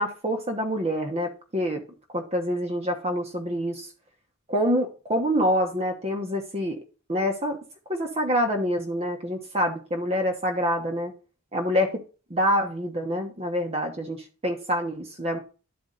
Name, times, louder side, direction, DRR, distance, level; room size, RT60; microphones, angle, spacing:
voice 1, 0.0-1.8 2.1-3.9 4.5-6.8 7.1-7.6 7.9-11.1 11.5-11.9 12.3-15.4, equal, 30° right, 3 dB, 1.0 m, -26 dB
11.5 x 4.4 x 3.8 m, 0.35 s
head